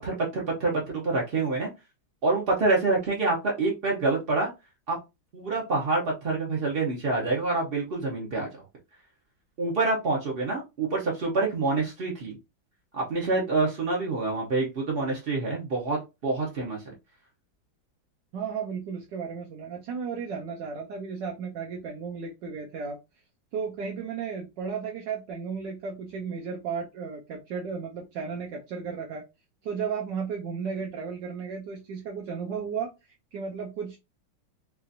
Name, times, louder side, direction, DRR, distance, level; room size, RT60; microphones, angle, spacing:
voice 1, 0.0-1.7 2.2-4.5 4.9-5.0 5.3-8.6 9.6-12.4 12.9-16.9, right 3 dB, 50° right, -2 dB, 0.7 m, -27 dB
voice 2, 18.3-23.0 23.5-29.2 29.6-34.0, right 6 dB, 70° right, 1 dB, 1.3 m, -34 dB
4.6 x 2.5 x 2.6 m, 0.24 s
omnidirectional pair, 2.1 m